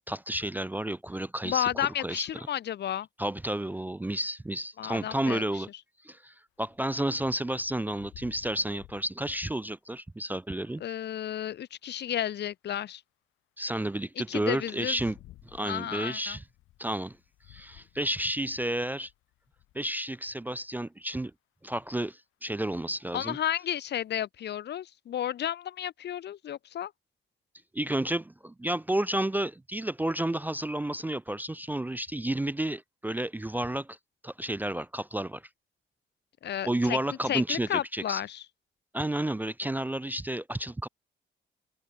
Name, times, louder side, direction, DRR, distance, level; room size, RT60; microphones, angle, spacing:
voice 1, 0.1-2.3 3.2-5.7 6.0-10.8 13.6-15.2 15.4-16.4 16.8-17.2 17.5-19.1 19.7-21.3 21.6-23.4 27.7-34.0 34.2-35.4 36.7-38.2 38.9-40.9, right 1 dB, 10° right, 0.4 m, -31 dB
voice 2, 1.4-3.1 4.8-5.4 10.8-13.0 14.3-15.0 15.6-16.4 23.1-26.9 36.4-37.0 37.3-38.4, left 10 dB, 60° left, 0.8 m, -32 dB
sound 1, 6.7-10.0 12.8-12.9 14.7-19.9 20.3-20.7 21.7-21.9 23.1-23.2, left 16 dB, 90° left, 4.9 m, -56 dB
cardioid pair, 90°, 20 cm